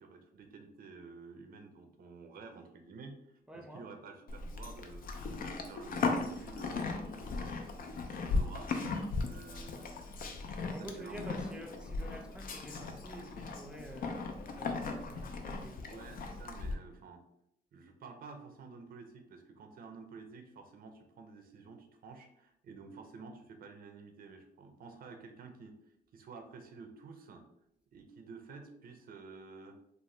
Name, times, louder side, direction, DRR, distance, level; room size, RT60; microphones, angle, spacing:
voice 1, 0.0-5.1 5.4-8.7 9.2-10.0 10.8-11.5 15.8-17.2 17.7-27.5 27.9-29.8, right 4 dB, 55° right, 6 dB, 0.5 m, -51 dB
voice 2, 3.5-3.9 10.7-14.3 14.6-15.8, right 1 dB, 5° right, 3 dB, 0.5 m, -48 dB
Livestock farm animals working animals, 4.3-16.7, left 3 dB, 55° left, 0.4 m, -37 dB
2.6 x 2.1 x 3.1 m, 0.78 s
cardioid pair, 80°, 17 cm